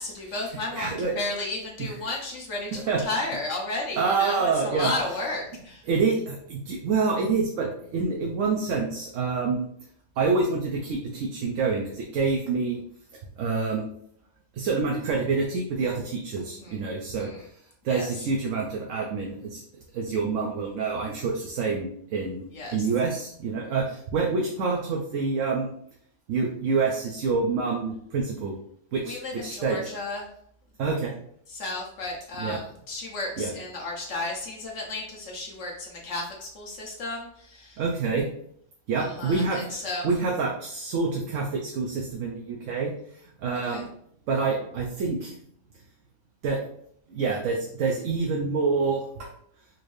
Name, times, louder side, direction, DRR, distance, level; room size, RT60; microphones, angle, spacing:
voice 1, 0.0-5.9 16.4-16.8 17.2-17.5 17.8-18.2 22.5-22.9 29.0-30.3 31.5-37.8 39.0-40.1 43.6-43.8, left 2 dB, 70° left, -2 dB, 1.2 m, -33 dB
voice 2, 0.7-1.1 1.8-1.9 2.7-3.0 4.0-4.9 5.9-9.7 10.2-12.8 13.4-13.9 14.5-17.5 17.8-19.6 19.9-25.7 26.3-28.5 28.9-29.8 30.8-31.1 32.4-32.6 33.4-33.5 37.8-38.3 38.9-43.9 44.3-45.4 46.4-46.6 47.1-49.3, right 4 dB, 90° right, 0 dB, 1.0 m, -27 dB
4.2 x 2.6 x 3.2 m, 0.66 s
omnidirectional pair, 1.3 m